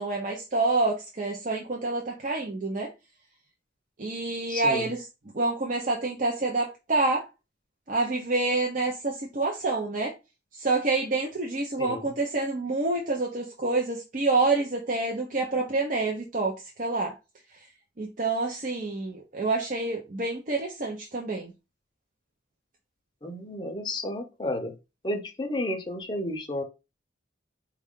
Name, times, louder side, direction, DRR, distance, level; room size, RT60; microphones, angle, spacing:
voice 1, 0.0-2.9 4.0-5.0 5.3-7.2 7.9-10.1 10.5-17.1 18.0-21.5, right 3 dB, 45° right, 0.6 m, -27 dB
voice 2, 4.5-4.9 11.8-12.1 23.2-24.7 25.0-26.6, left 1 dB, 25° left, 0.6 m, -32 dB
4.3 x 2.4 x 3.6 m
head